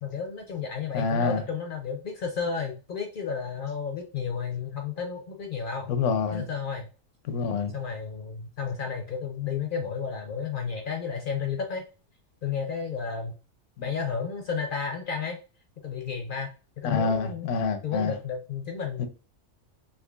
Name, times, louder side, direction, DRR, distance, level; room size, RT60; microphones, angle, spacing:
voice 1, 0.0-5.9 6.3-6.9 7.7-11.8 12.4-13.4 13.8-15.4 15.8-16.5 16.8-17.5 17.8-19.1, left 6 dB, 60° left, 0.6 m, -32 dB
voice 2, 0.9-1.4 5.9-6.5 7.3-7.7 16.8-18.1 19.0-19.1, left 5 dB, 75° left, 0.9 m, -27 dB
3.7 x 2.7 x 2.3 m
omnidirectional pair, 1.3 m